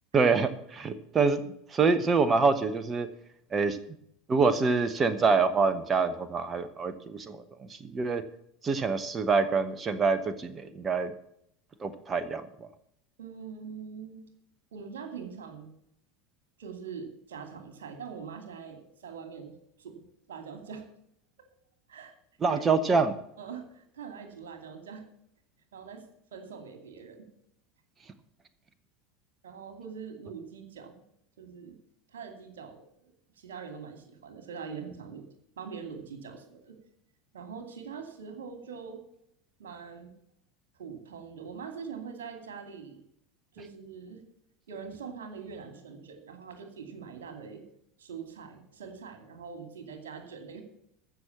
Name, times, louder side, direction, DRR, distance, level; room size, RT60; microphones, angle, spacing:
voice 1, 0.1-1.4 1.7-3.1 3.5-3.8 4.3-8.2 8.6-11.1 11.8-12.4 22.4-23.1, right 4 dB, 25° right, 12 dB, 1.0 m, -26 dB
voice 2, 13.2-14.3 14.7-15.7 16.6-20.9 21.9-22.1 22.5-22.6 23.4-25.0 25.7-26.0 26.3-27.3 29.4-31.0 31.4-31.8 32.1-35.3 35.6-36.8 37.3-39.0 39.6-40.1 40.8-43.0 43.5-44.2 44.7-47.6 48.0-50.6, right 6 dB, 65° right, 6 dB, 2.5 m, -43 dB
14.5 x 6.4 x 7.3 m, 0.72 s
figure-of-eight pair, 75°, 0 cm